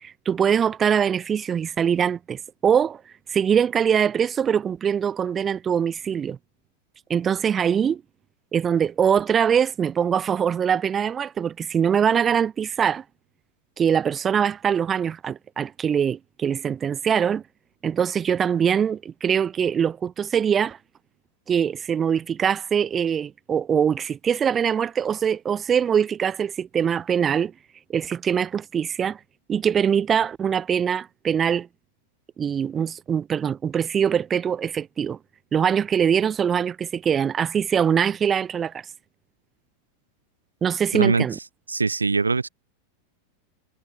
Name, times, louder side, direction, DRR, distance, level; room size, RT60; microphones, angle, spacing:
voice 1, 0.0-3.0 3.3-6.4 7.1-8.0 8.5-13.0 13.8-17.4 17.8-20.8 21.5-27.5 27.9-29.2 29.5-31.7 32.4-35.2 35.5-38.8 40.6-41.4, right 8 dB, 20° right, 0.5 m, -23 dB
voice 2, 40.9-41.3 41.7-42.5, right 4 dB, 80° right, 0.4 m, -22 dB
figure-of-eight pair, 90°, 0 cm